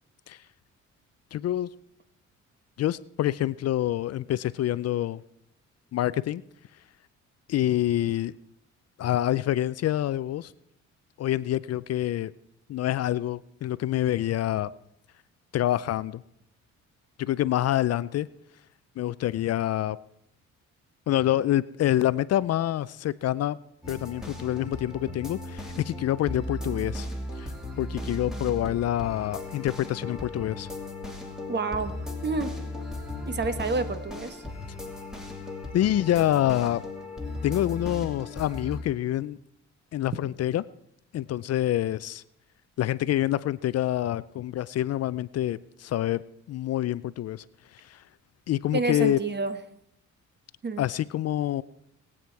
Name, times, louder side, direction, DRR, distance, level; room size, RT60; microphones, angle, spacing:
voice 1, 1.3-1.7 2.8-5.2 5.9-6.4 7.5-8.3 9.0-10.5 11.2-12.3 12.7-14.7 15.5-16.2 17.2-18.3 19.0-20.0 21.1-23.6 23.9-27.1 27.4-27.5 27.8-30.7 35.7-36.8 37.4-39.4 39.9-40.6 41.1-42.2 42.8-46.2 46.5-47.4 47.7-48.0 48.5-49.2 50.8-51.6, left 13 dB, 55° left, 18 dB, 0.5 m, -26 dB
sound 1, 23.8-38.8, left 2 dB, ahead, 2.6 m, -37 dB
voice 2, 31.5-32.5 33.3-34.4 48.7-49.6 50.6-50.8, right 3 dB, 35° right, 10 dB, 1.2 m, -29 dB
20.0 x 8.7 x 4.6 m, 0.76 s
cardioid pair, 90°, 30 cm